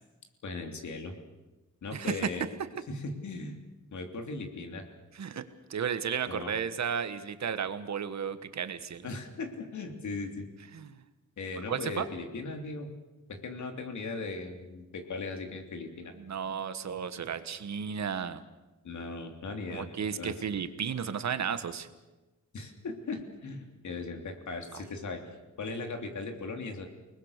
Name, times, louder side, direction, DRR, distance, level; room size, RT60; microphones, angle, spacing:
voice 1, 0.4-1.1 1.8-2.5 2.9-3.6 3.9-4.9 6.3-6.5 9.0-10.5 11.4-12.9 13.3-16.1 18.8-20.3 22.5-25.2 25.6-26.9, left 3 dB, 70° left, 5 dB, 3.3 m, -38 dB
voice 2, 1.9-2.3 5.1-5.4 5.7-9.1 10.7-10.9 11.7-12.1 16.2-18.4 19.7-21.9, right 7 dB, 60° right, 11 dB, 1.4 m, -33 dB
30.0 x 20.0 x 6.7 m, 1.1 s
wide cardioid pair, 175°, 31 cm